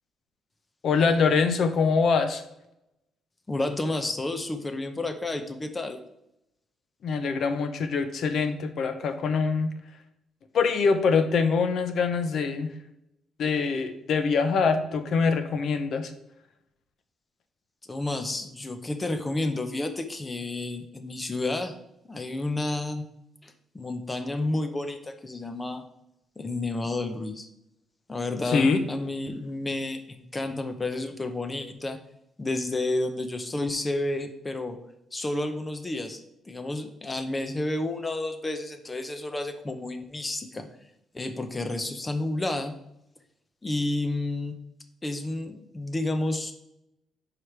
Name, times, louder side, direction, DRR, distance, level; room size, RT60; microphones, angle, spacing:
voice 1, 0.8-2.4 7.0-9.7 10.5-12.7 13.4-16.1 28.5-28.8, left 5 dB, 55° left, 9 dB, 0.8 m, -24 dB
voice 2, 3.5-6.0 17.9-21.7 22.0-23.0 23.4-25.8 26.4-27.5 28.1-32.0 32.4-34.8 35.1-40.7 41.1-42.7 43.6-44.5 45.0-46.5, left 2 dB, 15° left, 7 dB, 0.7 m, -31 dB
4.9 x 4.8 x 5.9 m, 0.82 s
cardioid pair, 160°, 0 cm